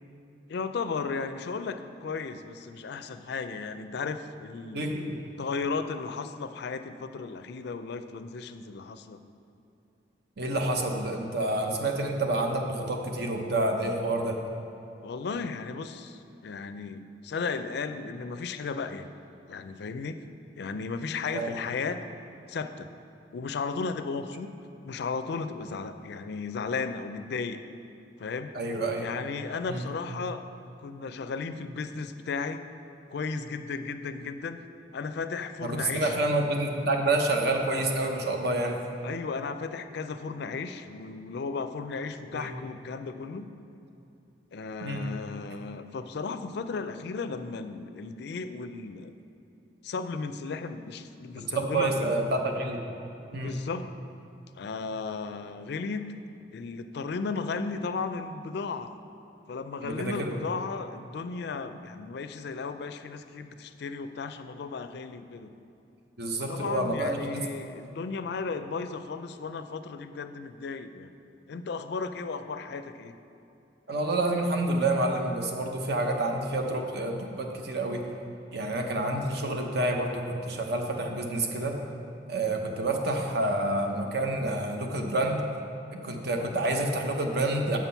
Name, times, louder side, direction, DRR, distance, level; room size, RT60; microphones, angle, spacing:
voice 1, 0.5-4.9 5.4-9.2 15.0-19.1 19.5-20.2 20.6-22.1 22.5-22.9 23.3-24.6 24.8-27.6 28.2-28.5 29.0-30.5 30.8-32.6 33.1-34.6 34.9-36.2 39.0-43.5 44.5-49.1 49.8-52.1 53.3-53.9 54.6-56.1 56.5-58.9 59.5-65.5 66.4-71.1 71.5-73.2, left 4 dB, 65° left, 10 dB, 0.4 m, -35 dB
voice 2, 4.7-5.2 10.4-14.4 21.3-21.5 28.5-29.1 29.7-29.8 35.6-38.8 42.3-42.5 44.8-45.1 51.4-52.8 53.3-53.5 59.8-60.4 66.2-67.4 73.9-78.0 78.5-81.8 82.3-85.4 85.9-87.8, right 2 dB, 65° right, 3 dB, 0.9 m, -28 dB
7.3 x 5.9 x 5.6 m, 2.8 s
head